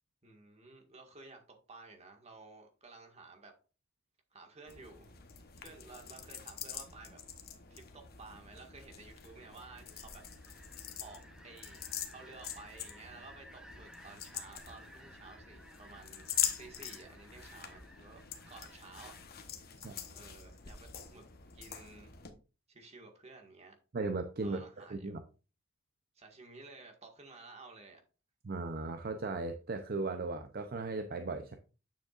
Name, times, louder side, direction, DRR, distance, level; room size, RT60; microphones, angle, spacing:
voice 1, 0.2-3.5 4.3-5.1 5.6-7.2 7.7-10.2 11.0-11.8 12.1-16.3 16.6-18.2 18.5-19.2 19.7-19.9 20.1-21.3 21.5-22.1 22.7-23.8 24.4-25.2 26.2-28.0, right 3 dB, 35° right, 2 dB, 1.8 m, -53 dB
sound 1, 4.7-22.3, left 9 dB, 50° left, 1.1 m, -44 dB
sound 2, 8.9-19.2, equal, 5° right, 0.9 m, -58 dB
voice 2, 23.9-25.2 28.4-31.6, right 3 dB, 50° right, 7 dB, 0.6 m, -37 dB
9.0 x 7.2 x 2.5 m, 0.34 s
head